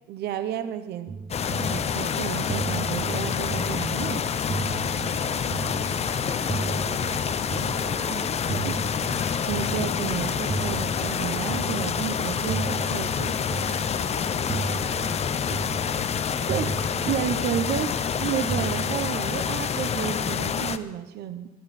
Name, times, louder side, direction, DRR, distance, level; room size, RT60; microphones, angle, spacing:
voice 1, 0.1-1.1 1.6-4.3 8.1-8.2 8.6-8.8 9.5-13.4 16.5-21.5, right 10 dB, 75° right, 10 dB, 1.1 m, -31 dB
sound 1, 1.1-19.1, right 4 dB, 25° right, 0.4 m, -35 dB
sound 2, 1.3-20.8, left 7 dB, 40° left, 0.8 m, -27 dB
sound 3, 3.2-11.8, equal, 15° left, 3.0 m, -48 dB
voice 2, 4.5-4.9 5.3-9.1 13.9-16.0, right 4 dB, 40° right, 0 dB, 3.6 m, -46 dB
23.5 x 10.5 x 4.4 m, 0.96 s
cardioid pair, 110°, 17 cm